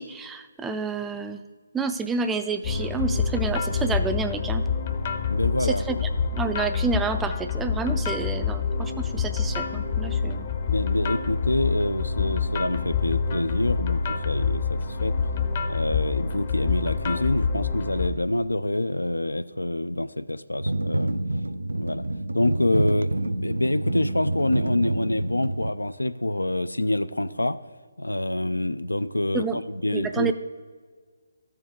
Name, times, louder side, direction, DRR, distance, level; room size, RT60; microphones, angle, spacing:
voice 1, 0.0-1.4 1.7-4.7 5.6-10.5 29.3-29.6 29.9-30.3, right 4 dB, 10° right, 9 dB, 0.3 m, -29 dB
sound 1, 2.6-18.1, left 5 dB, 40° left, 0.7 m, -27 dB
voice 2, 5.3-6.0 10.7-15.1 15.6-21.2 21.7-22.0 22.3-27.6 28.0-30.3, left 1 dB, 90° left, 13 dB, 0.3 m, -26 dB
sound 2, 20.6-25.7, right 2 dB, 80° right, 0.4 m, -27 dB
13.5 x 4.6 x 3.7 m, 1.5 s
figure-of-eight pair, 145°, 0 cm